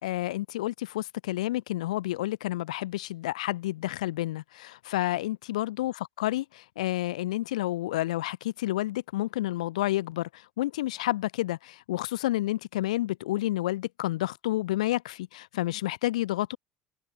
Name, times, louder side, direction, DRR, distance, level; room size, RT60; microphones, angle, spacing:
voice 1, 0.0-16.6, left 16 dB, 80° left, 1.3 m, -30 dB
hypercardioid pair, 75°, 4 cm